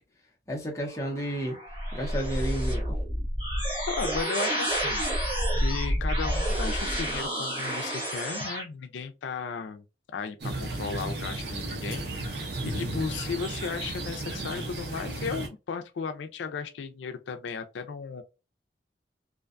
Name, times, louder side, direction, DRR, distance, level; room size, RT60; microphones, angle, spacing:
voice 1, 0.5-1.6 1.9-3.0, right 1 dB, 15° left, 0.7 m, -32 dB
sound 1, 0.9-8.6, equal, 30° right, 0.9 m, -29 dB
voice 2, 3.9-9.8 10.1-18.2, left 5 dB, 90° left, 0.4 m, -35 dB
sound 2, 10.4-15.5, right 2 dB, 70° right, 0.6 m, -34 dB
2.5 x 2.2 x 2.4 m
head